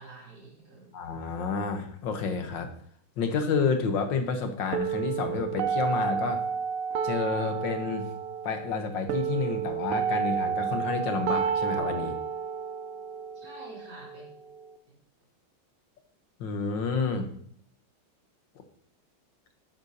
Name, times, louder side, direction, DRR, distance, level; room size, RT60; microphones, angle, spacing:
voice 1, 0.0-1.1 13.3-14.3 14.9-15.0, right 2 dB, 60° right, -4 dB, 4.3 m, -48 dB
voice 2, 0.9-2.7 3.2-6.4 7.0-8.1 8.4-12.2 16.4-17.3, left 5 dB, 65° left, 6 dB, 1.8 m, -30 dB
sound 1, 4.7-14.7, right 7 dB, 85° right, 0.7 m, -31 dB
12.0 x 11.5 x 2.8 m, 0.62 s
omnidirectional pair, 2.3 m